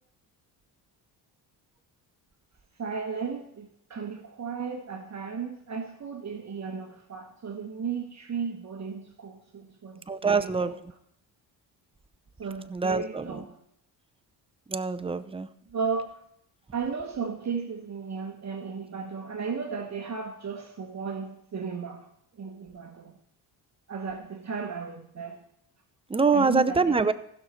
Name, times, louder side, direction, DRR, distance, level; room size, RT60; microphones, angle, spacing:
voice 1, 2.8-10.8 12.4-13.5 15.7-16.1 16.7-22.1 22.4-23.1 23.9-25.4 26.3-27.0, right 5 dB, 40° right, 1.3 m, -35 dB
voice 2, 10.1-10.7 12.7-13.5 14.7-15.5 26.1-27.1, right 4 dB, 15° right, 0.6 m, -25 dB
15.5 x 6.5 x 4.3 m
cardioid pair, 85°, 43 cm